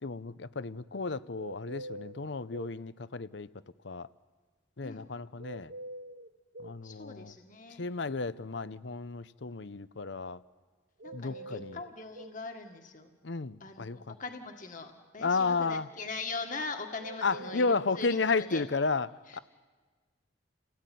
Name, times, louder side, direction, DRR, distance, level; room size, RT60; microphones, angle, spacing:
voice 1, 0.0-3.5 3.8-4.1 4.8-5.7 6.6-7.3 7.8-10.4 11.1-11.8 13.2-14.0 15.2-15.9 17.2-19.4, left 4 dB, 65° left, 15 dB, 0.8 m, -32 dB
sound 1, 1.4-2.8 5.4-6.8 11.0-12.4 17.0-18.4, right 1 dB, 55° right, 0.9 m, -45 dB
voice 2, 6.8-7.8 11.0-13.1 13.6-18.7 19.3-19.4, left 3 dB, 45° left, 4 dB, 1.8 m, -41 dB
29.5 x 18.0 x 9.3 m, 1.4 s
head